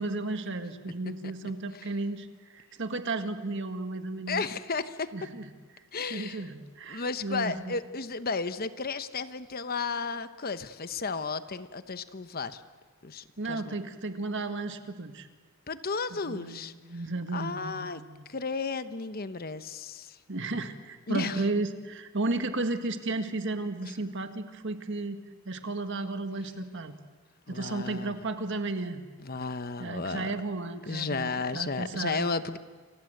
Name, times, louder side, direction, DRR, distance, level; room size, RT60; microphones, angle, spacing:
voice 1, 0.0-4.5 5.1-5.5 6.1-7.7 13.4-15.3 16.1-18.2 20.3-25.2 25.5-26.9 27.5-29.0 29.8-32.3, right 2 dB, 55° right, 8 dB, 1.8 m, -34 dB
voice 2, 4.3-5.1 5.9-6.4 6.9-12.6 13.0-13.8 15.7-16.7 17.3-18.0 18.3-20.2 21.1-21.4 23.8-23.9 27.5-28.2 29.2-30.3 30.9-32.6, left 4 dB, 45° left, 11 dB, 1.0 m, -33 dB
29.5 x 25.0 x 8.0 m, 1.4 s
head